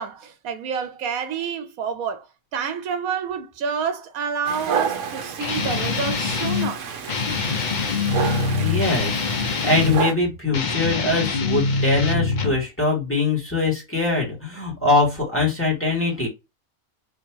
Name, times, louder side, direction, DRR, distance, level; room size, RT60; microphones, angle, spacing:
voice 1, 0.0-2.3 2.5-6.9, right 6 dB, 80° right, 1.1 m, -28 dB
Dog, 4.5-10.1, right 7 dB, 65° right, 1.1 m, -30 dB
Guitar, 5.4-6.7 7.1-10.0 10.5-12.6, left 4 dB, 55° left, 0.5 m, -24 dB
voice 2, 8.6-16.3, left 3 dB, 10° left, 1.7 m, -22 dB
3.6 x 2.9 x 2.9 m
omnidirectional pair, 1.5 m